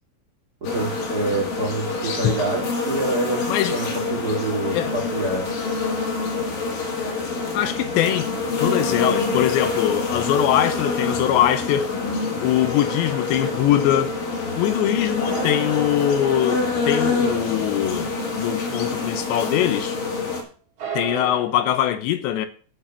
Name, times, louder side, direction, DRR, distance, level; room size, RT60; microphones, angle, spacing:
sound 1, 0.6-20.4, left 4 dB, 55° left, 3.6 m, -26 dB
voice 1, 0.6-5.5, right 3 dB, 90° right, 0.8 m, -27 dB
voice 2, 4.7-5.1 7.5-8.3 8.6-11.9 12.4-14.2 14.6-20.0 20.9-22.5, left 11 dB, 80° left, 2.9 m, -22 dB
sound 2, 11.6-13.1 15.2-19.3 19.6-19.7 20.8-21.4, right 5 dB, 45° right, 2.4 m, -36 dB
8.0 x 6.6 x 7.2 m
omnidirectional pair, 5.4 m